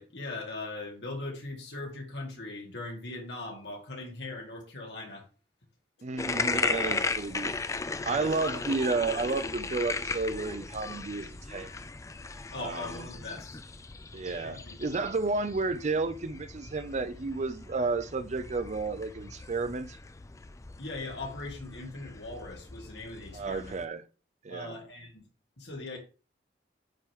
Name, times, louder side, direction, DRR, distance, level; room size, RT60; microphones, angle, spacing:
voice 1, 0.0-5.2 6.2-6.3 6.8-7.0 8.0-8.4 12.5-13.6 14.4-14.8 20.8-23.7 24.5-25.3 25.6-26.0, left 2 dB, 80° left, 2.2 m, -40 dB
voice 2, 6.0-7.5 8.0-11.7 12.6-12.9 14.1-20.0 23.3-24.0 24.4-24.8, right 3 dB, 40° right, 0.5 m, -32 dB
sound 1, 6.2-23.9, left 4 dB, 15° left, 0.3 m, -37 dB
8.9 x 3.6 x 3.1 m
head